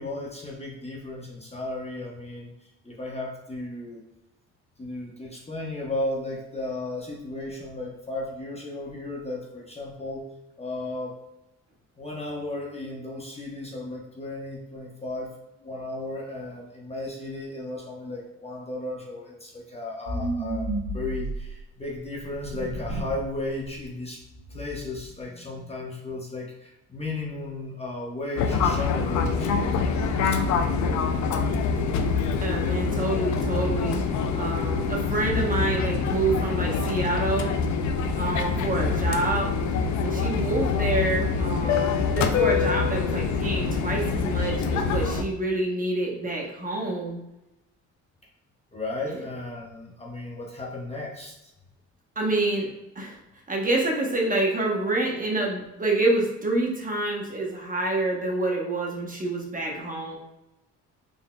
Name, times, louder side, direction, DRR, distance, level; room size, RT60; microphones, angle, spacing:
voice 1, 0.0-2.5 2.8-4.0 4.8-10.2 10.6-11.2 12.0-15.3 15.6-24.2 24.5-31.0 48.7-51.3, left 2 dB, 20° left, -3 dB, 0.8 m, -35 dB
sound 1, 20.1-21.6 22.3-23.3 23.6-23.8 24.2-25.1, right 1 dB, 70° right, 1.0 m, -32 dB
Fixed-wing aircraft airplane, 28.4-45.2, left 5 dB, 70° left, 0.5 m, -25 dB
voice 2, 32.4-34.0 34.3-37.5 38.1-39.5 40.0-47.2 52.2-52.7 53.0-53.2 53.5-60.2, right 2 dB, 25° right, -2 dB, 0.9 m, -27 dB
3.9 x 3.5 x 2.2 m, 0.92 s
cardioid pair, 90°, 30 cm